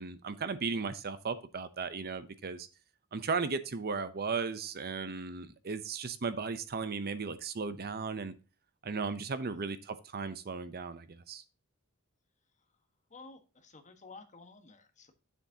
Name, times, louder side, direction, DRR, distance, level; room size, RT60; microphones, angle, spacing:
voice 1, 0.0-2.7 3.1-8.3 8.8-11.4, right 4 dB, 45° right, 12 dB, 0.7 m, -36 dB
voice 2, 13.1-15.1, left 3 dB, 35° left, 6 dB, 1.4 m, -53 dB
9.6 x 7.2 x 2.8 m, 0.32 s
head